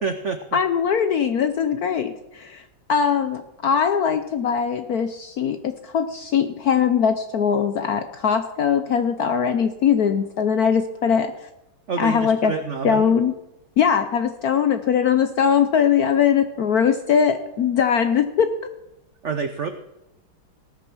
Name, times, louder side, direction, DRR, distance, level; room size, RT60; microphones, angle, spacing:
voice 1, 0.0-0.6 11.9-13.2 19.2-19.7, right 5 dB, 85° right, 8 dB, 0.6 m, -28 dB
voice 2, 0.5-2.6 2.9-11.3 12.0-12.5 12.8-13.3 13.8-18.7, left 7 dB, 70° left, 9 dB, 0.9 m, -21 dB
18.0 x 6.8 x 6.1 m, 0.90 s
omnidirectional pair, 2.3 m